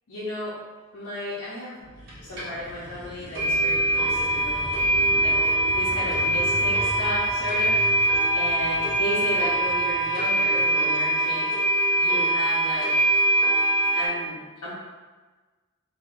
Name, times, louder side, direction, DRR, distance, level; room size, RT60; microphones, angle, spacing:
voice 1, 0.1-0.6 0.9-1.8 2.3-4.6 5.2-5.4 5.7-7.8 8.3-11.5 12.0-12.9 13.9-14.7, left 1 dB, 90° left, -9 dB, 0.7 m, -34 dB
sound 1, 1.8-10.6, equal, 35° left, 1.0 m, -40 dB
sound 2, 2.1-2.2 2.4-2.5 2.9-3.0 3.3-14.1, right 1 dB, 60° right, 1.3 m, -23 dB
3.4 x 2.7 x 2.5 m, 1.3 s
head